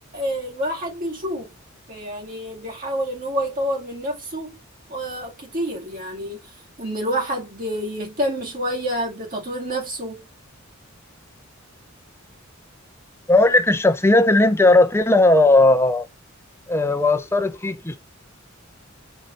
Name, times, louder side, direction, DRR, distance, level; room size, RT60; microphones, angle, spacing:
voice 1, 0.1-1.5 1.9-4.6 4.9-6.5 6.8-10.3, equal, 40° right, 2.4 m, -28 dB
voice 2, 13.3-16.1 16.7-18.0, left 2 dB, 10° left, 0.9 m, -16 dB
4.8 x 4.5 x 5.4 m
head